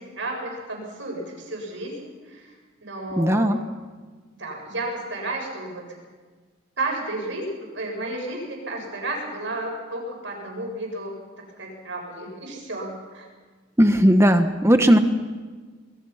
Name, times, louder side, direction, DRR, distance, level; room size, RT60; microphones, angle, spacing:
voice 1, 0.0-2.5 2.8-3.7 4.4-5.8 6.8-13.2, right 2 dB, 70° right, 0 dB, 7.9 m, -32 dB
voice 2, 3.2-3.6 13.8-15.0, equal, 15° right, 7 dB, 1.4 m, -17 dB
25.0 x 22.5 x 5.9 m, 1.4 s
head